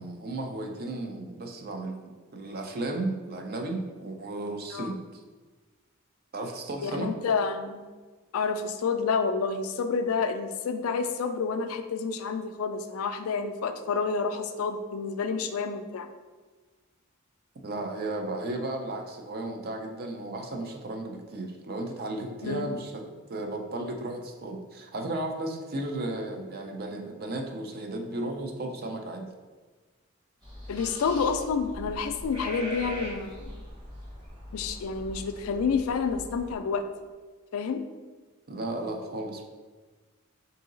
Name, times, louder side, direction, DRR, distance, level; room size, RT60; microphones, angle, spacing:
voice 1, 0.0-5.2 6.3-7.1 17.6-23.0 23.3-29.3 38.5-39.4, right 2 dB, 45° right, 3 dB, 0.5 m, -34 dB
voice 2, 6.8-7.9 8.3-16.1 22.4-22.7 30.7-33.6 34.5-36.8 37.5-37.8, left 5 dB, 75° left, 8 dB, 0.3 m, -29 dB
sound 1, 30.4-36.6, equal, 20° right, 1.1 m, -41 dB
3.8 x 2.8 x 3.8 m, 1.4 s
head